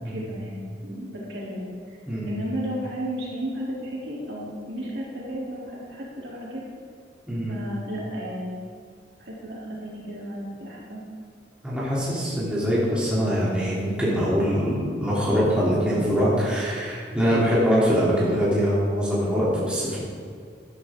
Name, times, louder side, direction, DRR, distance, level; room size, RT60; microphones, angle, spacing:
voice 1, 0.1-2.0 2.3-6.6 7.5-8.6 9.2-11.0 17.3-17.7, equal, 65° right, -5 dB, 3.5 m, -33 dB
voice 2, 7.3-7.6 11.6-20.0, equal, 5° right, -8 dB, 3.3 m, -23 dB
13.5 x 12.0 x 3.8 m, 2.1 s
head